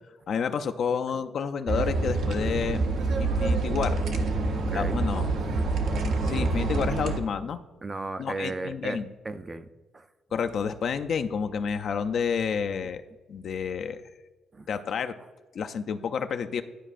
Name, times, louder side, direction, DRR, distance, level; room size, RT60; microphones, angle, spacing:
voice 1, 0.3-2.8 3.2-4.0 4.7-5.3 6.2-7.6 8.2-9.1 10.3-13.0 13.3-14.0 14.7-15.2 15.5-16.6, left 6 dB, 60° left, 8 dB, 0.4 m, -29 dB
sound 1, 1.7-7.2, right 3 dB, 75° right, 0.7 m, -26 dB
voice 2, 4.5-5.0 5.4-5.5 5.9-6.0 7.8-9.7 9.9-10.1 12.8-12.9 14.5-14.7, right 3 dB, 25° right, 10 dB, 0.4 m, -36 dB
12.0 x 4.4 x 2.5 m, 1.3 s
cardioid pair, 90°, 0 cm